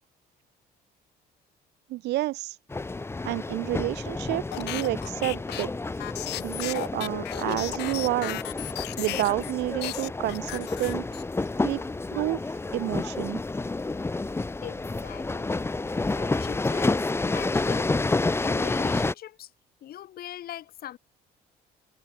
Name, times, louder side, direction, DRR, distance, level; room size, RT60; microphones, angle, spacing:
voice 1, 1.9-2.5 3.3-5.7 6.4-8.4 9.0-11.0 11.6-11.8 12.1-12.4 12.7-13.4, right 18 dB, 80° right, 1.9 m, -29 dB
sound 1, 2.7-19.1, left 3 dB, 15° left, 1.5 m, -30 dB
sound 2, 4.5-9.5 9.8-11.5, left 18 dB, 85° left, 5.3 m, -35 dB
voice 2, 14.6-15.7 16.1-17.9 18.4-19.5 19.8-21.0, left 12 dB, 65° left, 5.1 m, -41 dB
cardioid pair, 110°, 17 cm